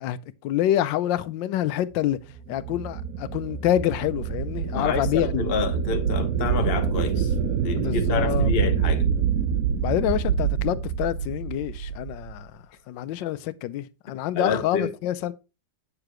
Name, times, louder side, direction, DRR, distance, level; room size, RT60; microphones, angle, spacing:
voice 1, 0.0-2.2 2.5-5.4 7.8-8.5 9.8-12.5 12.9-15.3, left 12 dB, 75° left, 1.3 m, -27 dB
sound 1, 2.3-12.4, right 7 dB, 60° right, 1.0 m, -26 dB
voice 2, 4.7-9.1 14.3-14.9, left 6 dB, 40° left, 0.9 m, -29 dB
8.6 x 7.0 x 3.0 m
omnidirectional pair, 2.1 m